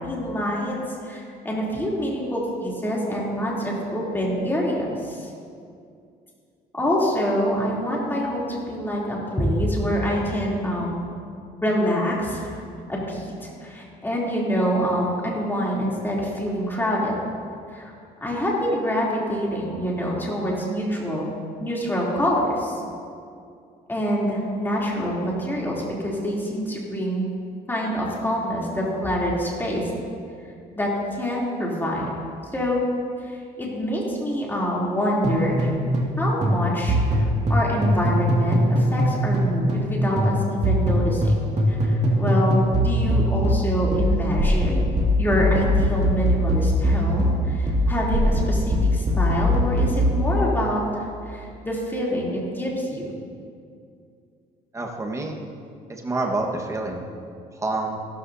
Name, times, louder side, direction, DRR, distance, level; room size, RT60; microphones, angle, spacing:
voice 1, 0.0-5.3 6.7-11.0 11.6-12.6 12.9-17.1 17.7-17.9 18.2-21.2 21.6-22.8 23.9-27.2 27.7-29.9 30.7-32.1 32.5-32.8 33.2-35.7 36.2-41.3 41.7-42.6 42.8-44.8 45.2-53.1, equal, 10° left, -5 dB, 3.2 m, -26 dB
sound 1, 35.2-36.2 36.4-39.9 40.2-50.2, equal, 40° right, 2.3 m, -21 dB
voice 2, 54.7-55.4 55.9-57.0 57.5-58.0, right 2 dB, 15° right, 0 dB, 1.5 m, -27 dB
15.0 x 13.0 x 2.8 m, 2.3 s
cardioid pair, 110°, 17 cm